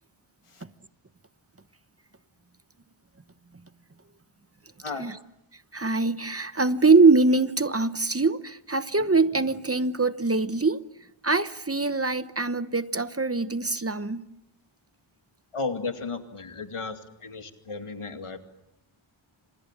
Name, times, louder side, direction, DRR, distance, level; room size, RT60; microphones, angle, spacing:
voice 1, 5.7-10.8 11.2-14.2, right 3 dB, 30° right, 13 dB, 1.0 m, -23 dB
voice 2, 15.5-18.4, left 4 dB, 85° left, 6 dB, 2.4 m, -34 dB
29.5 x 26.5 x 7.4 m, 0.85 s
wide cardioid pair, 65°, 50 cm